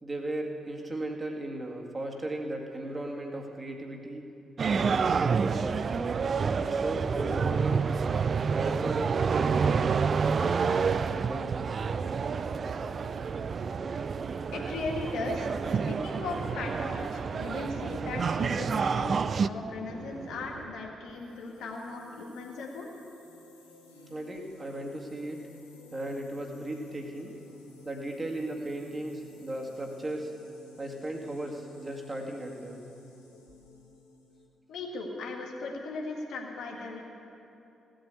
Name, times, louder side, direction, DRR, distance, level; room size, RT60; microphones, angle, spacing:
voice 1, 0.0-4.3 4.6-6.1 6.6-7.9 8.5-9.8 10.4-11.8 24.1-25.4 25.9-27.4 27.8-30.3 30.8-32.8, right 1 dB, 30° right, 1 dB, 2.1 m, -36 dB
sound 1, 4.6-19.5, right 5 dB, 50° right, 0.3 m, -28 dB
sound 2, 11.6-20.7, right 4 dB, 65° right, 0.9 m, -44 dB
voice 2, 14.5-22.9 34.7-37.0, left 3 dB, 65° left, 0 dB, 1.8 m, -37 dB
sound 3, 21.0-34.5, left 3 dB, 90° left, 1.1 m, -53 dB
16.5 x 7.7 x 8.3 m, 2.9 s
figure-of-eight pair, 40°, 0 cm